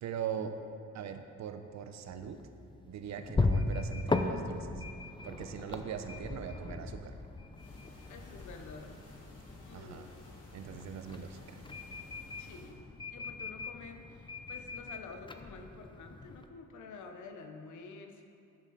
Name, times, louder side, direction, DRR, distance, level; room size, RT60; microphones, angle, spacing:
voice 1, 0.0-0.6 0.9-2.4 2.8-4.8 5.2-7.1 9.7-10.1 10.5-11.6, right 8 dB, 65° right, 8 dB, 0.8 m, -41 dB
sound 1, 2.1-16.5, left 3 dB, 15° left, 0.5 m, -38 dB
sound 2, 7.5-12.7, left 2 dB, 55° left, 2.3 m, -54 dB
voice 2, 8.1-9.0 9.6-10.2 12.4-12.8 13.1-18.2, left 4 dB, 75° left, 6 dB, 1.0 m, -49 dB
10.5 x 7.3 x 4.2 m, 2.5 s
cardioid pair, 90°, 30 cm